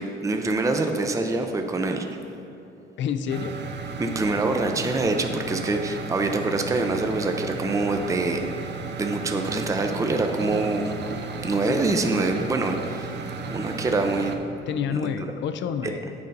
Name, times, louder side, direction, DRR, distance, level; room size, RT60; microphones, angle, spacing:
voice 1, 0.0-2.1 4.0-8.4 9.0-10.9 11.4-13.1 13.5-14.3 15.8-15.9, right 3 dB, 15° right, 5 dB, 0.5 m, -25 dB
voice 2, 3.0-3.6 11.6-12.1 14.7-16.1, left 7 dB, 70° left, 10 dB, 0.5 m, -29 dB
sound 1, 3.3-14.4, right 4 dB, 60° right, 0.6 m, -34 dB
7.8 x 3.9 x 5.3 m, 2.9 s
cardioid pair, 90°, 20 cm